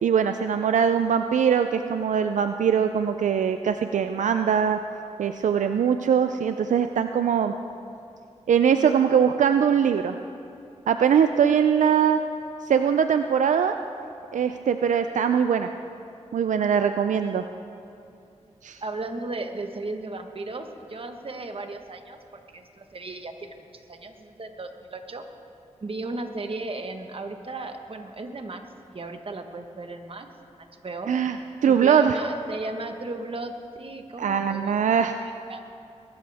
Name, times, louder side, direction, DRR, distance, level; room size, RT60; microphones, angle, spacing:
voice 1, 0.0-4.8 5.2-7.5 8.5-10.2 10.9-12.2 12.6-13.8 14.3-15.7 16.3-17.4 18.6-18.8 31.1-31.4 31.6-32.2 34.2-35.2, right 7 dB, 80° right, 8 dB, 0.4 m, -22 dB
voice 2, 18.8-25.2 25.8-28.6 28.9-30.3 30.6-31.1 31.6-35.7, right 2 dB, 45° right, 6 dB, 1.3 m, -36 dB
22.0 x 13.0 x 3.5 m, 2.6 s
cardioid pair, 65°, 13 cm